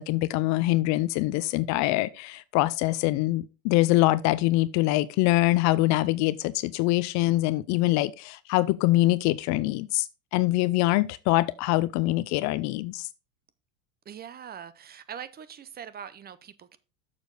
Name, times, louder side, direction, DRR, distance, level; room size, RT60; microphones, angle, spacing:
voice 1, 0.0-10.1 10.3-13.1, left 18 dB, 45° left, 0.5 m, -24 dB
voice 2, 14.1-16.8, right 8 dB, 25° right, 0.6 m, -42 dB
6.9 x 6.7 x 3.9 m
hypercardioid pair, 100°, 42 cm